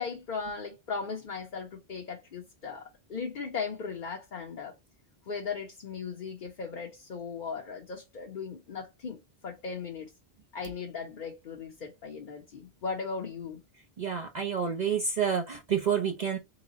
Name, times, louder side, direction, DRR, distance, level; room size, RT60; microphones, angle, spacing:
voice 1, 0.0-4.7 5.3-9.2 9.4-10.1 10.5-13.6, left 5 dB, 55° left, 0.9 m, -37 dB
voice 2, 14.0-16.4, right 7 dB, 50° right, 0.7 m, -29 dB
4.0 x 2.2 x 3.9 m
omnidirectional pair, 1.0 m